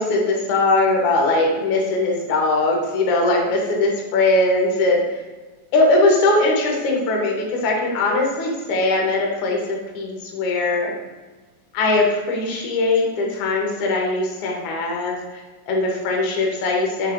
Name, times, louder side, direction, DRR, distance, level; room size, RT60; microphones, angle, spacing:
voice 1, 0.0-5.0 5.7-11.0 11.7-15.2 15.7-17.1, left 2 dB, 75° left, -1 dB, 1.3 m, -20 dB
5.2 x 3.7 x 2.4 m, 1.3 s
omnidirectional pair, 3.7 m